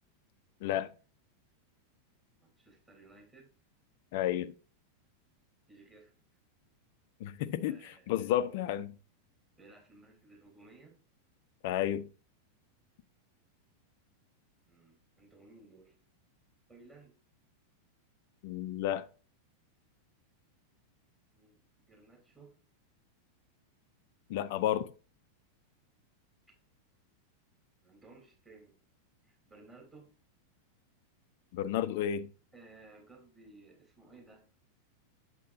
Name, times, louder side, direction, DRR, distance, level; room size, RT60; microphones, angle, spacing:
voice 1, 2.4-3.5 5.7-6.1 7.6-8.7 9.6-10.9 14.6-16.0 16.7-17.1 21.3-22.5 27.8-28.7 29.2-30.1 32.5-34.4, right 3 dB, 15° right, 3.4 m, -57 dB
voice 2, 4.1-4.5 7.2-8.9 11.6-12.1 18.4-19.1 24.3-24.9 31.5-32.3, left 11 dB, 50° left, 0.6 m, -32 dB
8.4 x 7.4 x 2.6 m
figure-of-eight pair, 90°, 0 cm